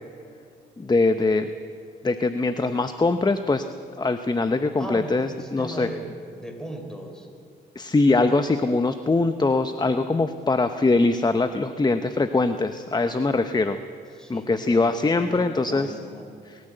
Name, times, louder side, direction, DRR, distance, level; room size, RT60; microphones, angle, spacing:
voice 1, 0.8-1.5 2.0-3.6 4.0-5.9 7.7-13.8 14.3-15.9 16.5-16.6, left 3 dB, 20° left, 9 dB, 0.9 m, -22 dB
voice 2, 4.8-6.1 6.3-7.3 14.1-16.3, equal, 5° left, 3 dB, 4.8 m, -37 dB
24.5 x 14.0 x 7.9 m, 2.5 s
cardioid pair, 75°, 20 cm